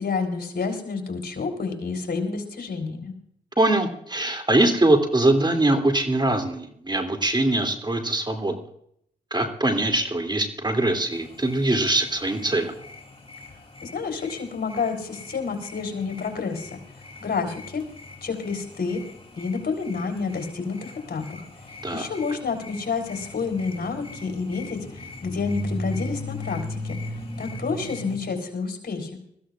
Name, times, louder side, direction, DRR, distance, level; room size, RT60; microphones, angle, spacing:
voice 1, 0.0-3.1 13.8-16.8 17.2-17.8 18.2-19.0 19.4-21.4 21.9-24.8 25.2-27.0 27.4-29.1, left 5 dB, 55° left, 5 dB, 4.0 m, -29 dB
voice 2, 3.6-8.5 9.3-12.7 21.8-22.1, right 2 dB, 25° right, 4 dB, 2.8 m, -22 dB
sound 1, 11.1-28.2, left 1 dB, 30° left, 3.0 m, -38 dB
21.0 x 15.0 x 2.5 m, 0.68 s
supercardioid pair, 40°, 19 cm